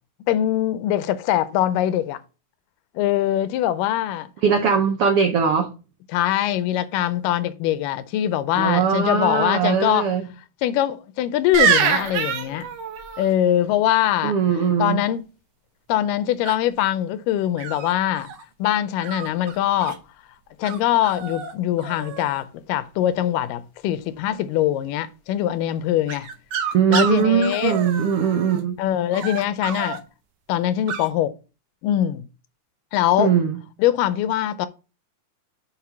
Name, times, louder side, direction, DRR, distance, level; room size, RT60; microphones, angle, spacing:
voice 1, 0.3-2.2 3.0-4.3 6.1-10.1 10.6-12.7 13.2-14.4 14.8-15.2 15.9-18.3 18.6-20.0 20.6-26.3 26.9-27.8 28.8-30.0 30.5-31.4 31.8-32.3 32.9-33.3 33.8-34.7, left 12 dB, 85° left, 2.3 m, -22 dB
voice 2, 4.4-5.7 8.5-10.3 14.2-15.0 26.7-28.8 33.2-33.6, right 7 dB, 85° right, 1.2 m, -20 dB
sound 1, 11.5-13.3 16.5-16.9 17.6-18.4 19.0-20.0 20.6-20.8 21.0-21.5 21.8-22.4 26.1-28.6 29.1-30.0 30.9-31.1, right 7 dB, 65° right, 1.7 m, -26 dB
5.9 x 4.5 x 5.5 m
omnidirectional pair, 3.8 m